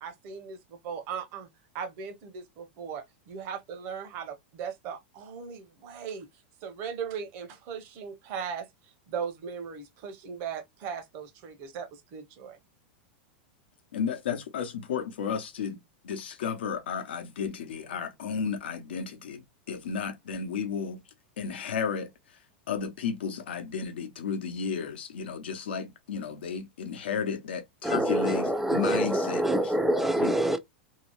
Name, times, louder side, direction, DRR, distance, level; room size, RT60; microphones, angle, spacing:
voice 1, 0.0-1.5 1.7-6.3 6.6-8.7 9.1-12.6, right 7 dB, 45° right, 0.8 m, -38 dB
voice 2, 13.9-15.8 16.0-21.0 21.4-22.1 22.7-29.7 30.2-30.3, left 6 dB, 85° left, 0.8 m, -33 dB
voice 3, 27.8-30.6, right 1 dB, 5° right, 0.5 m, -26 dB
2.8 x 2.0 x 2.9 m
hypercardioid pair, 125°, 6 cm